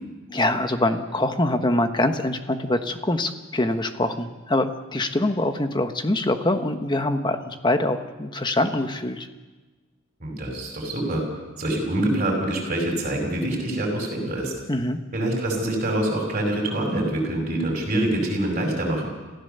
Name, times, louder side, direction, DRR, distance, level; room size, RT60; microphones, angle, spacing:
voice 1, 0.3-9.3 14.7-15.0, left 1 dB, 20° left, 7 dB, 1.3 m, -24 dB
voice 2, 10.2-11.2 11.6-14.5 15.1-19.1, right 1 dB, 35° right, -1 dB, 5.6 m, -25 dB
26.5 x 15.5 x 6.9 m, 1.2 s
head